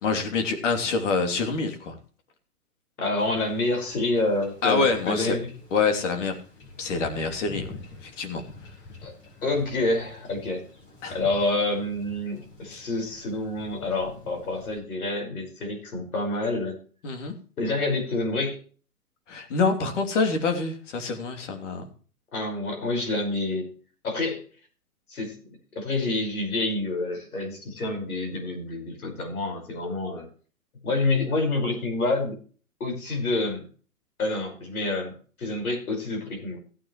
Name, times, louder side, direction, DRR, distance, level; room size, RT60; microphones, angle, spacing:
voice 1, 0.0-1.9 4.6-5.4 5.7-6.3 6.8-7.7 8.0-8.4 11.0-11.2 12.7-12.8 17.0-17.3 19.3-21.8, left 4 dB, 50° left, 5 dB, 3.1 m, -26 dB
voice 2, 3.0-5.5 9.0-9.1 9.4-10.6 11.1-16.8 17.6-18.6 22.3-23.7 24.0-24.4 25.1-25.4 25.8-30.3 30.8-32.4 32.8-33.6 34.2-35.1 35.4-36.6, left 2 dB, 70° left, 3 dB, 5.5 m, -28 dB
Wind / Ocean / Boat Water vehicle, 3.2-14.8, left 3 dB, 25° left, 5.7 m, -46 dB
16.0 x 9.1 x 3.2 m, 0.40 s
hypercardioid pair, 130°, 45 cm